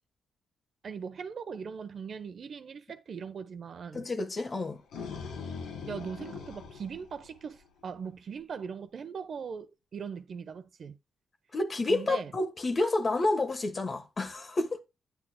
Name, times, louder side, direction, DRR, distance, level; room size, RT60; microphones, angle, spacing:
voice 1, 0.8-4.1 5.9-11.0 11.9-12.3, right 6 dB, 55° right, 1.0 m, -40 dB
voice 2, 3.9-4.8 11.5-14.8, left 2 dB, 40° left, 1.3 m, -29 dB
sound 1, 4.6-7.8, left 5 dB, 85° left, 1.9 m, -41 dB
9.4 x 8.7 x 2.3 m
cardioid pair, 75°, 0 cm